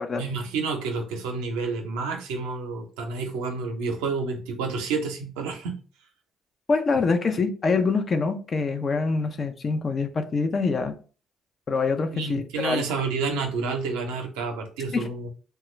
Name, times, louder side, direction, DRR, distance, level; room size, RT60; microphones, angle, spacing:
voice 1, 0.2-5.8 12.1-15.3, right 4 dB, 90° right, 3 dB, 0.6 m, -29 dB
voice 2, 6.7-11.0 11.7-12.8 14.9-15.1, left 4 dB, 45° left, 6 dB, 0.5 m, -25 dB
3.0 x 2.3 x 3.0 m, 0.37 s
supercardioid pair, 65°, 0 cm